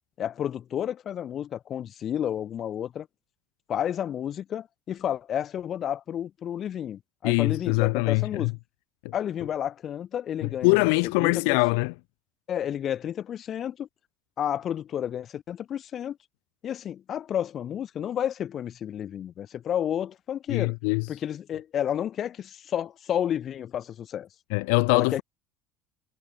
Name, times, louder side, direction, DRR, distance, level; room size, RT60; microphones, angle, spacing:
voice 1, 0.2-3.1 3.7-8.5 9.1-10.9 11.2-11.6 12.5-13.9 14.4-16.2 16.6-20.8 21.1-24.3 24.9-25.2, left 10 dB, 30° left, 6.0 m, -31 dB
voice 2, 7.2-8.5 10.4-11.9 20.5-21.1 24.5-25.2, left 35 dB, 80° left, 2.7 m, -23 dB
cardioid pair, 170°, 0 cm